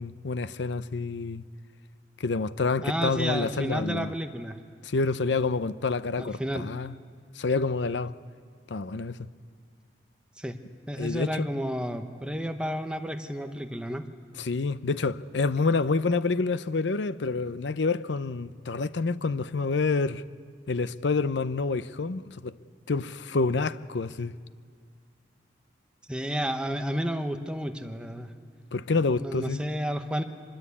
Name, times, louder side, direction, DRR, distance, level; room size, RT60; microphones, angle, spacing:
voice 1, 0.0-1.4 2.2-4.1 4.8-6.9 7.4-8.1 8.7-9.2 11.0-11.5 14.4-20.2 20.7-22.5 22.9-24.4 28.7-29.6, left 4 dB, 80° left, 0.6 m, -28 dB
voice 2, 2.8-4.6 6.2-6.7 10.4-10.6 10.9-14.0 26.1-28.3 29.2-30.2, equal, 5° right, 1.0 m, -31 dB
25.5 x 21.0 x 8.5 m
head